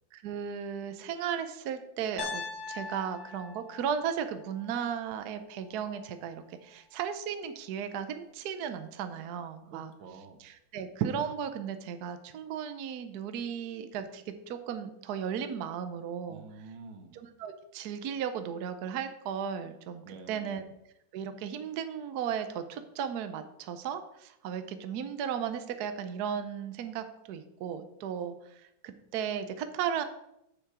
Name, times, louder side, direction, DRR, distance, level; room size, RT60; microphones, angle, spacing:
voice 1, 0.1-9.9 10.4-16.4 17.1-20.6 21.1-30.0, right 8 dB, 65° right, 9 dB, 1.1 m, -35 dB
Piano, 2.2-6.2, left 4 dB, 60° left, 1.2 m, -43 dB
voice 2, 9.7-10.4 16.3-17.2 20.0-20.6, right 4 dB, 80° right, 6 dB, 1.8 m, -48 dB
7.7 x 6.9 x 4.8 m, 0.80 s
omnidirectional pair, 2.2 m